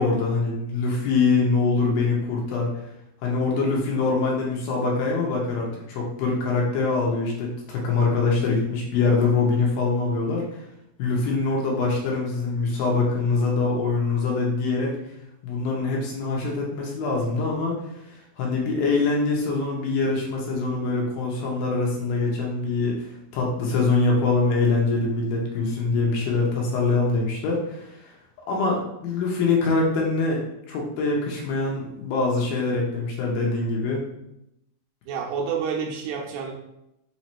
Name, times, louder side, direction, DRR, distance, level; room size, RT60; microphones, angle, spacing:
voice 1, 0.0-2.7 3.2-10.4 11.0-14.9 15.4-23.1 23.3-28.1 28.5-30.4 30.7-34.0, left 3 dB, 80° left, -2 dB, 2.5 m, -24 dB
voice 2, 35.1-36.5, right 6 dB, 80° right, -1 dB, 2.3 m, -28 dB
5.9 x 3.1 x 2.9 m, 0.83 s
omnidirectional pair, 4.4 m